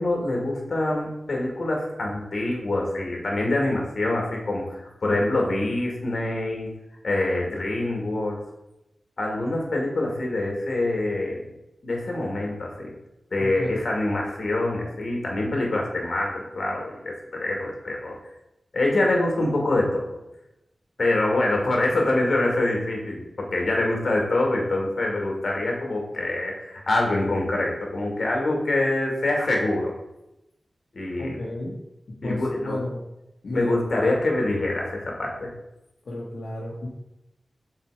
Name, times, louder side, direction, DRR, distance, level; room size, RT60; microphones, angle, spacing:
voice 1, 0.0-6.7 7.0-8.4 9.2-11.4 11.8-12.9 13.3-18.2 18.7-20.2 21.0-29.9 30.9-31.4 32.2-32.8 33.5-35.5, left 2 dB, 60° left, -1 dB, 2.2 m, -25 dB
voice 2, 13.4-13.8 31.2-31.8 32.1-33.0 33.4-33.8 36.0-36.9, left 1 dB, 80° left, -5 dB, 1.4 m, -32 dB
5.9 x 4.8 x 4.8 m, 0.90 s
wide cardioid pair, 85°, 0 cm